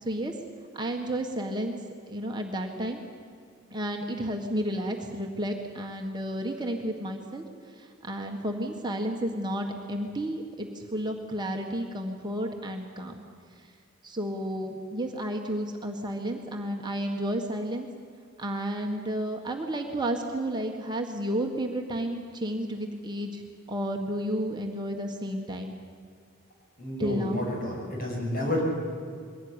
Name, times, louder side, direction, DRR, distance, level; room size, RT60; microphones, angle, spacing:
voice 1, 0.0-0.3 0.7-1.8 2.1-3.0 3.7-7.4 7.8-13.2 14.0-17.9 18.4-23.4 23.7-25.7 27.0-27.4, right 1 dB, 20° right, 2 dB, 1.6 m, -32 dB
voice 2, 26.8-28.6, left 1 dB, 45° left, -1 dB, 6.7 m, -30 dB
22.0 x 17.0 x 9.8 m, 2.2 s
head